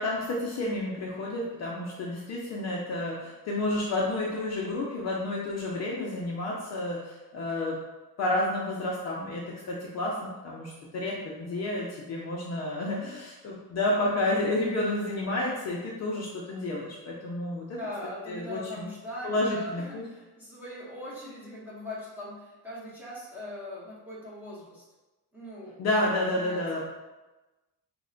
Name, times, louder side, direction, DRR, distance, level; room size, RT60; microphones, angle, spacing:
voice 1, 0.0-7.8 8.2-17.8 18.3-18.9 19.2-20.0 25.8-26.8, left 1 dB, 40° left, -4 dB, 0.4 m, -30 dB
voice 2, 17.7-24.8 25.3-25.8 26.3-26.8, left 1 dB, 5° right, -8 dB, 0.6 m, -40 dB
3.2 x 2.1 x 3.7 m, 1.1 s
cardioid pair, 170°, 43 cm